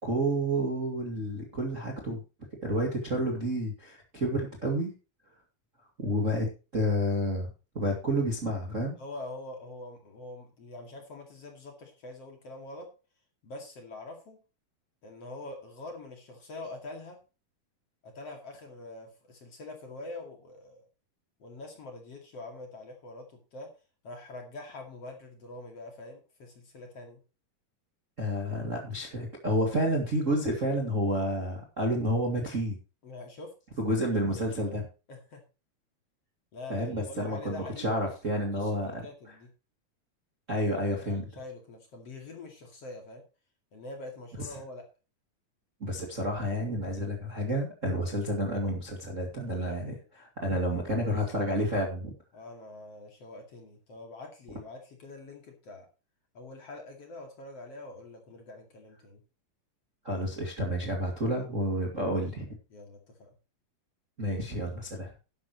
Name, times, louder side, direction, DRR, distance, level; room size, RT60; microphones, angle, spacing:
voice 1, 0.0-2.2 2.6-4.9 6.0-6.5 6.7-7.5 7.7-9.0 28.2-32.8 33.8-34.9 36.7-39.3 40.5-41.3 45.8-52.1 60.0-62.5 64.2-65.1, equal, 25° right, 1 dB, 1.9 m, -30 dB
voice 2, 9.0-12.9 13.4-14.4 15.0-17.2 18.0-20.9 21.4-23.7 24.0-27.2 33.0-33.5 34.1-34.7 35.1-35.4 36.5-37.9 38.5-39.5 41.0-43.2 43.7-44.8 49.3-50.0 50.4-51.2 52.3-55.9 56.3-59.2 62.7-63.3, left 2 dB, 45° left, 2 dB, 3.0 m, -45 dB
11.5 x 11.5 x 3.1 m, 0.32 s
omnidirectional pair, 4.4 m